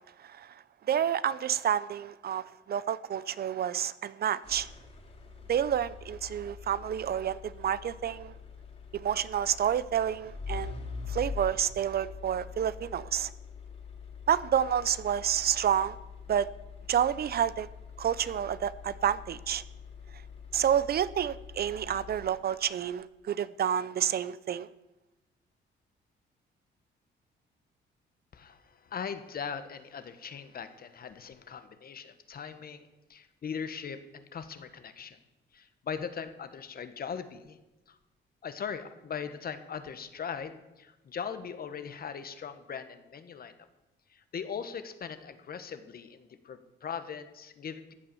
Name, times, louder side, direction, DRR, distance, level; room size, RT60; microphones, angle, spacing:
voice 1, 0.2-0.5 0.9-4.7 5.5-8.3 8.9-10.7 11.1-13.3 14.3-16.0 16.3-16.5 16.9-17.7 18.0-19.6 20.5-24.7, right 9 dB, 50° right, 17 dB, 0.5 m, -29 dB
sound 1, 4.4-22.7, left 5 dB, 35° left, 3.1 m, -44 dB
voice 2, 28.3-35.2 35.5-37.6 37.9-38.0 38.4-43.5 44.1-47.9, left 7 dB, 50° left, 11 dB, 1.3 m, -40 dB
15.0 x 8.7 x 6.9 m, 1.0 s
cardioid pair, 90°, 20 cm